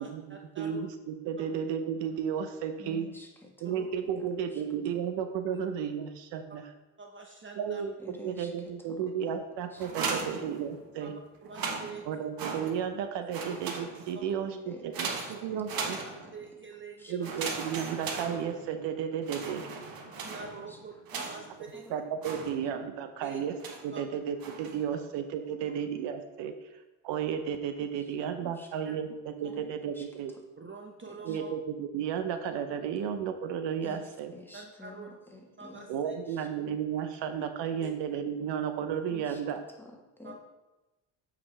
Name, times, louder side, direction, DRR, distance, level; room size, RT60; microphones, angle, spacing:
voice 1, 0.0-0.8 3.6-3.9 7.0-7.8 11.0-12.3 14.1-14.3 16.3-17.3 20.2-21.9 23.2-23.4 23.9-24.1 28.8-29.0 29.4-29.5 30.6-31.5 34.5-35.1 35.6-36.1 37.8-37.9 40.2-40.3, right 4 dB, 25° right, 2 dB, 0.8 m, -46 dB
voice 2, 0.6-3.1 3.6-6.6 7.6-11.1 12.1-16.0 17.1-19.7 21.9-23.5 23.8-26.5 27.0-30.3 31.2-34.3 35.9-39.6, right 8 dB, 70° right, 8 dB, 0.7 m, -33 dB
voice 3, 2.8-4.6 8.0-9.9 10.2-10.3 14.4-16.3 17.0-17.1 20.7-20.8 21.1-21.4 21.7-21.9 28.4-28.7 29.1-29.2 29.5-30.1 31.1-31.4 33.8-36.0 36.3-36.5 39.1-40.4, equal, 5° left, 0 dB, 1.4 m, -50 dB
sound 1, 9.8-11.0 11.4-13.0 13.3-14.3 14.9-16.5 17.2-18.9 19.2-21.6 22.2-22.9 23.6-24.0 24.4-24.9, right 4 dB, 50° right, 1.2 m, -38 dB
8.2 x 5.1 x 3.3 m, 1.1 s
supercardioid pair, 75°, 44 cm